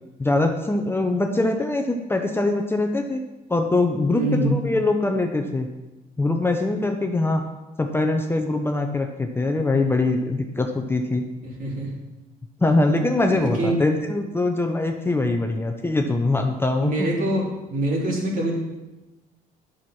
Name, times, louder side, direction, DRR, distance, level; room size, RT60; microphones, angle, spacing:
voice 1, 0.2-3.2 3.5-5.7 6.2-7.4 7.8-11.2 12.6-17.1, left 2 dB, 15° left, 4 dB, 0.8 m, -23 dB
voice 2, 4.1-4.6 11.4-11.9 13.3-13.8 16.8-18.5, right 1 dB, 50° right, -2 dB, 3.2 m, -25 dB
9.1 x 6.4 x 6.0 m, 1.1 s
cardioid pair, 110°, 17 cm